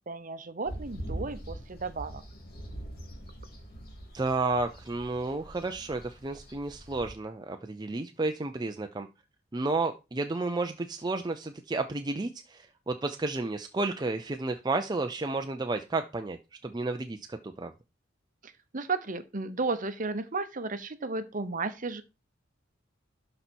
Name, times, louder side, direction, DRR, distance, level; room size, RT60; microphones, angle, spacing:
voice 1, 0.1-2.2 18.4-22.0, right 3 dB, 40° right, 0.9 m, -34 dB
sound 1, 0.6-7.1, right 1 dB, 50° left, 3.0 m, -43 dB
voice 2, 4.1-9.1 9.5-17.7, right 3 dB, 20° right, 0.5 m, -32 dB
12.0 x 4.3 x 4.5 m
head